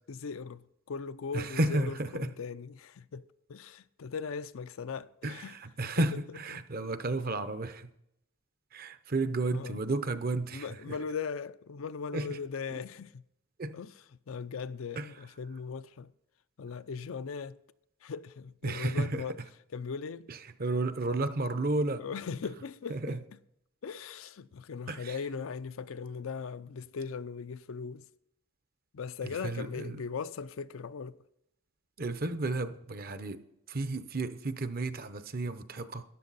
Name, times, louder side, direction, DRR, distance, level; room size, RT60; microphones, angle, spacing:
voice 1, 0.1-5.5 5.8-6.0 6.5-6.9 9.5-9.8 10.5-13.2 13.7-13.9 14.3-16.1 16.6-17.6 18.0-19.4 19.7-20.3 22.0-23.2 23.8-28.1 28.9-31.2, left 5 dB, 75° left, 0.5 m, -39 dB
voice 2, 1.3-2.3 5.2-7.9 8.7-11.0 12.1-12.4 12.7-12.8 13.6-13.8 15.0-15.1 18.6-19.2 20.3-22.0 22.9-23.2 24.9-25.2 29.2-30.0 32.0-33.4 33.7-36.0, right 2 dB, 45° right, 0.7 m, -32 dB
13.5 x 10.5 x 4.1 m
head